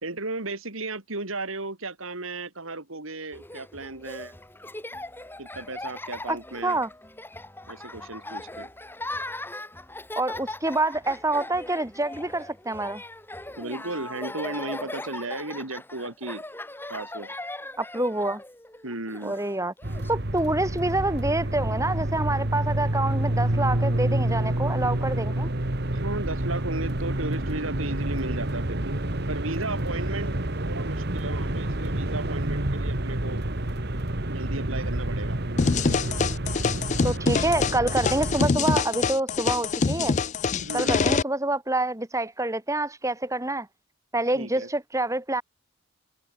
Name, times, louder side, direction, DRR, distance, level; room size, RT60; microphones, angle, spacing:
voice 1, 0.0-4.3 5.4-6.8 7.7-8.7 13.6-16.4 16.9-17.3 18.8-19.3 25.9-29.0 29.3-33.4 34.3-35.4 40.6-41.0 44.3-44.7, right 2 dB, 75° right, 3.9 m, -35 dB
Laughter, 3.3-20.1, left 2 dB, 10° left, 6.7 m, -39 dB
voice 2, 6.3-6.9 10.2-13.0 17.8-18.4 19.2-19.7 20.1-25.5 37.0-40.2 40.7-43.7 44.1-45.4, right 2 dB, 15° right, 3.5 m, -27 dB
sound 1, 19.8-38.5, right 1 dB, 50° right, 2.0 m, -28 dB
sound 2, 35.6-41.2, left 4 dB, 35° left, 0.4 m, -25 dB
head